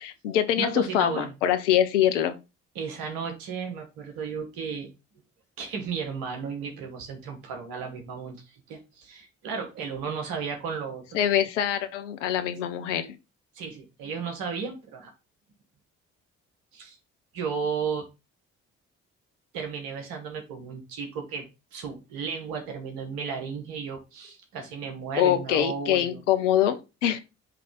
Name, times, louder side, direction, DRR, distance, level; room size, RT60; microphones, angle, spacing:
voice 1, 0.0-2.4 11.1-13.1 25.2-27.2, left 11 dB, 85° left, 0.7 m, -24 dB
voice 2, 0.6-1.3 2.8-4.9 5.6-11.2 13.6-15.1 16.7-17.0 17.3-18.1 19.5-21.5 21.7-26.2, right 6 dB, 70° right, 1.8 m, -34 dB
7.7 x 3.4 x 3.8 m
hypercardioid pair, 40°, 36 cm